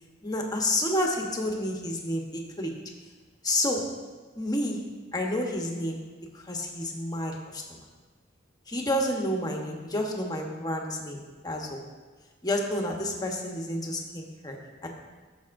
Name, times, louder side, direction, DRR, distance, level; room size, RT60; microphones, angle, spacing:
voice 1, 0.2-2.8 3.4-4.0 4.3-6.1 6.3-7.9 8.7-11.9 12.4-14.9, left 1 dB, 20° left, 1 dB, 1.1 m, -30 dB
14.5 x 6.8 x 2.6 m, 1.4 s
head